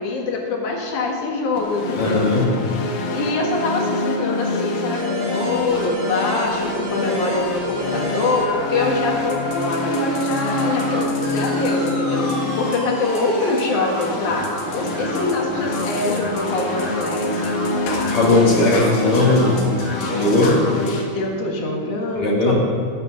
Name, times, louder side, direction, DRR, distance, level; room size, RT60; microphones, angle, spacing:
voice 1, 0.0-2.3 3.1-17.7 21.1-22.5, left 3 dB, 55° left, 0 dB, 2.3 m, -24 dB
sound 1, 1.6-21.0, left 2 dB, 75° left, 4.0 m, -26 dB
voice 2, 2.0-2.5 18.1-19.6 20.1-20.6 22.2-22.5, left 2 dB, 30° left, -4 dB, 3.2 m, -17 dB
sound 2, 4.9-20.7, equal, 70° right, 6.8 m, -30 dB
20.5 x 13.5 x 4.0 m, 2.2 s
omnidirectional pair, 5.6 m